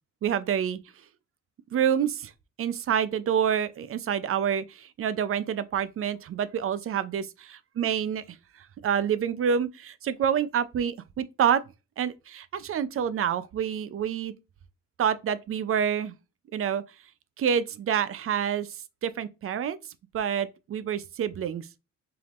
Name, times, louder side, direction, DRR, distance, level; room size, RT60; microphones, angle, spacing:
voice 1, 0.2-0.8 1.7-2.3 2.6-7.2 7.8-8.2 8.8-11.6 12.0-14.3 15.0-16.1 16.5-16.8 17.4-18.7 19.0-19.8 20.1-21.7, right 8 dB, 45° right, 0.5 m, -27 dB
4.7 x 3.5 x 2.5 m
cardioid pair, 90°, 30 cm